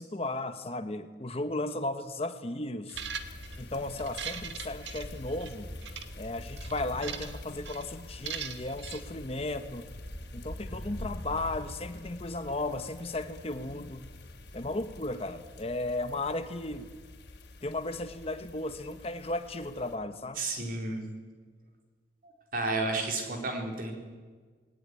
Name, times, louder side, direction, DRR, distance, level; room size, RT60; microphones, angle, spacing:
voice 1, 0.0-3.0 3.6-5.7 6.2-9.8 10.3-14.0 14.5-16.9 17.6-20.4, left 2 dB, 35° left, 9 dB, 1.1 m, -35 dB
sound 1, 2.9-20.0, left 1 dB, 65° left, 3.1 m, -45 dB
sound 2, 2.9-3.6 4.0-5.5 5.8-6.1 6.6-7.4 7.6-7.8 8.3-9.0, right 7 dB, 75° right, 1.6 m, -39 dB
voice 2, 20.4-21.0 22.2-23.9, right 2 dB, 50° right, 2 dB, 4.1 m, -32 dB
20.0 x 18.0 x 9.8 m, 1.5 s
head